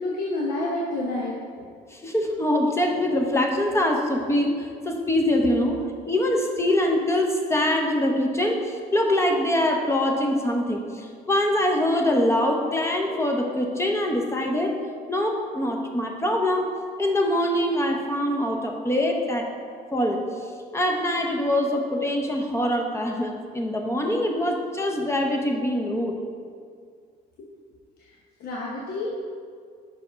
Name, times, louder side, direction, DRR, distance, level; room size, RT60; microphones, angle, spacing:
voice 1, 0.0-1.6 27.4-27.5 28.0-29.1, left 2 dB, 65° left, -4 dB, 1.0 m, -29 dB
voice 2, 1.9-14.8 15.1-16.7 17.0-19.5 19.9-20.2 20.7-26.1, left 1 dB, 15° left, 2 dB, 0.8 m, -24 dB
5.5 x 4.9 x 5.1 m, 2.1 s
cardioid pair, 110°, 17 cm